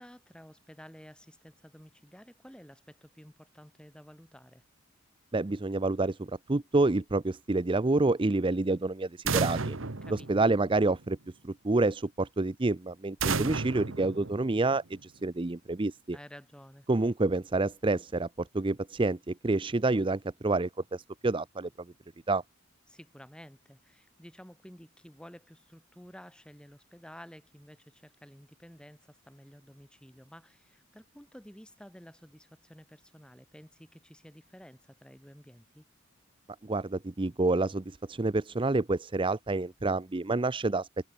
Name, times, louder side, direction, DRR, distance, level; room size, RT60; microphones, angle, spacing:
voice 1, 0.0-4.6 10.0-10.5 16.1-16.9 22.9-35.8, equal, 5° left, 3.0 m, -52 dB
voice 2, 5.3-9.8 10.1-11.2 11.4-16.2 16.9-21.7 22.3-22.4 36.6-40.9, right 2 dB, 25° right, 0.5 m, -28 dB
sound 1, 9.3-11.1 13.2-15.0, right 4 dB, 65° right, 1.3 m, -33 dB
head